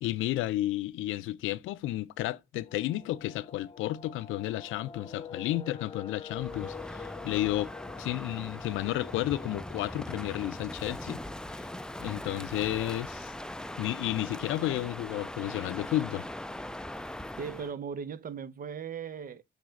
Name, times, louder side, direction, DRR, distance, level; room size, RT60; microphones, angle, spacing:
voice 1, 0.0-7.7 8.0-11.2 11.6-11.7 12.0-13.3 13.8-16.3, left 15 dB, 85° left, 0.5 m, -32 dB
sound 1, 2.6-13.4 13.7-13.8 14.1-14.3 14.7-15.2 15.7-15.8 16.0-16.5 16.8-16.9, left 5 dB, 25° left, 0.9 m, -48 dB
Crow, 6.3-17.7, left 1 dB, 5° left, 0.4 m, -41 dB
voice 2, 17.4-19.4, right 6 dB, 45° right, 0.7 m, -38 dB
6.3 x 3.3 x 5.1 m
cardioid pair, 90°, 20 cm